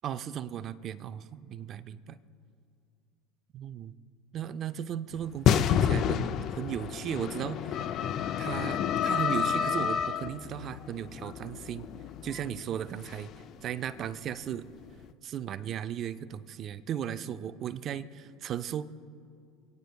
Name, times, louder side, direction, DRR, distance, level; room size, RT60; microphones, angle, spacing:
voice 1, 0.0-2.2 3.5-3.9 4.3-6.3 6.6-7.8 8.4-11.9 12.2-13.3 13.6-14.7 15.2-18.8, right 9 dB, 45° right, 13 dB, 0.4 m, -36 dB
sound 1, 5.5-15.0, left 8 dB, 50° left, 0.4 m, -29 dB
28.0 x 9.5 x 2.3 m, 2.4 s
supercardioid pair, 95°, 0 cm